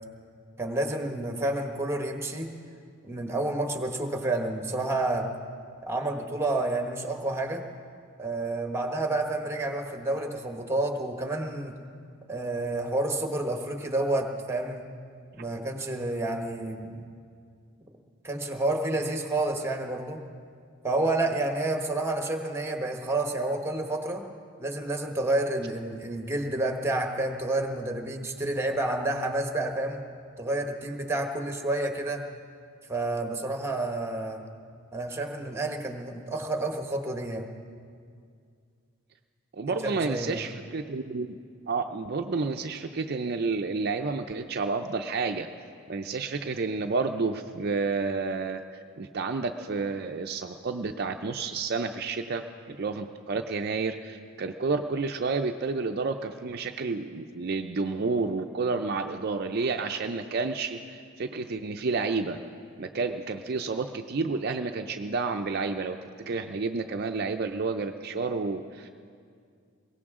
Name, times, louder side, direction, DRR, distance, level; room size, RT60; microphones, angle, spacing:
voice 1, 0.6-2.5 3.0-5.3 5.8-7.6 8.2-11.7 12.3-14.8 15.3-17.1 18.2-20.2 20.8-24.2 24.6-30.0 30.4-32.2 32.9-34.4 34.9-37.5 39.7-40.4, right 2 dB, 10° right, 3 dB, 1.1 m, -29 dB
voice 2, 39.5-41.4 41.7-45.5 45.9-48.6 49.0-62.4 62.8-66.0 66.3-68.9, right 4 dB, 50° right, 5 dB, 0.5 m, -30 dB
22.0 x 17.0 x 3.7 m, 2.3 s
head